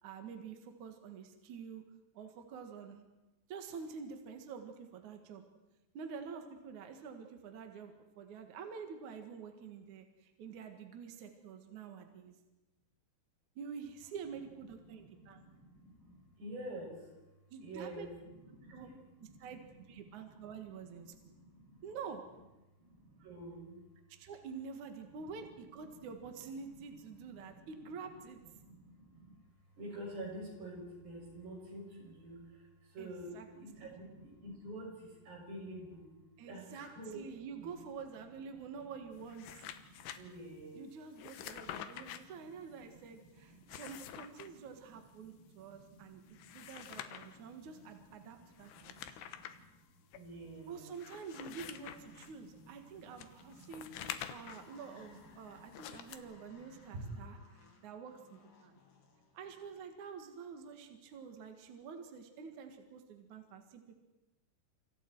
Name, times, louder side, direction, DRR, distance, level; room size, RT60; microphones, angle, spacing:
voice 1, 0.0-1.8 2.1-3.0 3.5-5.4 5.9-12.4 13.6-15.4 17.5-18.1 18.7-18.9 19.4-19.6 19.9-21.4 21.8-22.2 24.2-28.4 33.0-33.4 33.8-33.9 36.4-36.9 37.1-39.7 40.8-46.2 46.5-49.2 50.7-53.9 54.3-58.8 59.3-64.0, right 6 dB, 55° right, 5 dB, 2.7 m, -48 dB
voice 2, 14.8-22.4 22.8-24.1 25.0-36.1 36.4-40.9 41.4-49.7 50.1-54.7 54.9-57.3, right 1 dB, 85° right, -1 dB, 9.5 m, -51 dB
sound 1, 39.2-40.2 41.2-42.2 43.5-44.5 46.3-47.4 48.6-49.6 50.1-50.2 50.9-52.3 53.2-54.7 55.7-56.2, left 10 dB, 85° left, 3.2 m, -47 dB
sound 2, 46.9-60.1, left 5 dB, 55° left, 4.3 m, -65 dB
29.5 x 27.5 x 4.7 m, 1.0 s
omnidirectional pair, 4.7 m